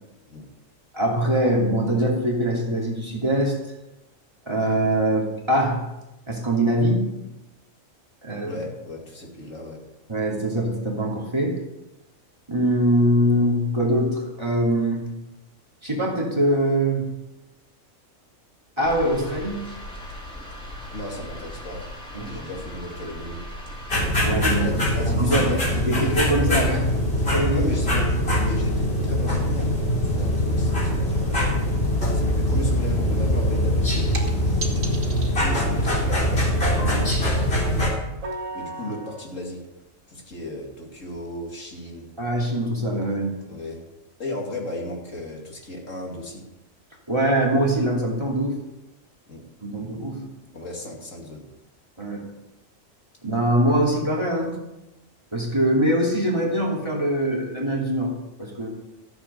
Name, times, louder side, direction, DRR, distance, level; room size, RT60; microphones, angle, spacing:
voice 1, 0.9-3.6 4.5-5.8 6.3-7.1 8.2-8.6 10.1-11.6 12.5-15.1 15.8-17.1 18.8-19.7 22.1-22.3 24.2-24.7 25.2-25.5 25.9-26.9 27.3-27.7 30.2-30.3 36.8-37.1 42.2-43.3 47.1-48.6 49.6-50.2 52.0-52.2 53.2-54.5 55.3-58.1 58.4-58.7, right 1 dB, 20° right, -3 dB, 2.9 m, -23 dB
voice 2, 8.5-9.8 20.9-21.8 22.2-23.4 24.5-26.2 27.5-31.3 32.1-34.3 35.4-36.4 38.5-39.6 40.1-42.1 43.4-43.8 44.2-46.5 49.3-49.4 49.8-49.9 50.5-51.4, left 1 dB, 70° left, -1 dB, 3.0 m, -35 dB
sound 1, 18.8-24.0, equal, 5° left, 3.6 m, -38 dB
sound 2, 23.9-37.9, left 1 dB, 50° left, 3.9 m, -22 dB
sound 3, 34.1-34.3 34.6-35.3 36.6-37.1 38.2-39.3 40.3-40.4 41.2-41.3, right 3 dB, 80° right, 2.5 m, -33 dB
14.0 x 7.9 x 6.8 m, 0.97 s
omnidirectional pair, 1.4 m